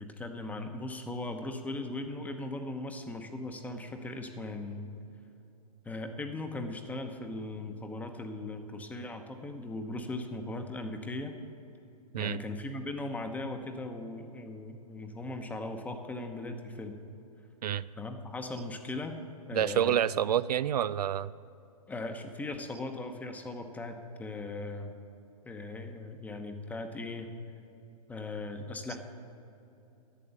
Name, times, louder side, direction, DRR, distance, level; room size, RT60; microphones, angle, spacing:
voice 1, 0.0-4.9 5.8-11.3 12.2-17.0 18.0-19.2 19.5-20.0 21.9-24.9 25.4-27.3 28.1-29.0, left 2 dB, 10° left, 6 dB, 0.9 m, -38 dB
voice 2, 19.5-21.3, right 10 dB, 80° right, 17 dB, 0.4 m, -28 dB
11.0 x 8.4 x 8.1 m, 2.9 s
hypercardioid pair, 135°, 20 cm